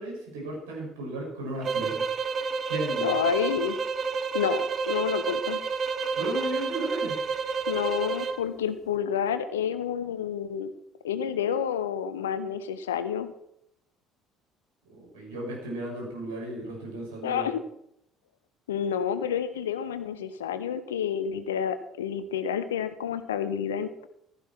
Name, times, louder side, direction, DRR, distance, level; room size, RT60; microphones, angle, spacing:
voice 1, 0.0-2.0 2.7-3.1 6.1-7.2 14.9-17.5, right 1 dB, 70° right, -1 dB, 6.5 m, -35 dB
sound 1, 1.6-8.4, right 5 dB, 40° right, 1.4 m, -30 dB
voice 2, 3.0-3.8 4.3-5.6 7.7-10.7 11.0-13.3 17.2-17.6 18.7-24.1, left 8 dB, 75° left, 12 dB, 1.0 m, -29 dB
16.0 x 12.5 x 4.5 m, 0.76 s
figure-of-eight pair, 55°, 0 cm